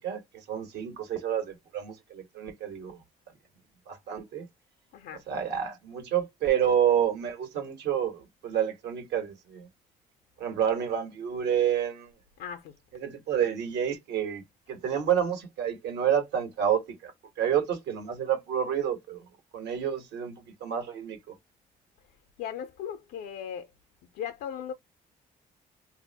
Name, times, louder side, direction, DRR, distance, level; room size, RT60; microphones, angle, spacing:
voice 1, 0.0-3.0 3.9-4.5 5.3-9.7 10.4-12.1 12.9-17.1 17.4-19.2 19.5-21.3, right 9 dB, 80° right, 1.3 m, -29 dB
voice 2, 12.4-12.7 22.4-23.7 24.1-24.7, left 8 dB, 80° left, 0.6 m, -37 dB
2.6 x 2.0 x 3.9 m
supercardioid pair, 70°, 17 cm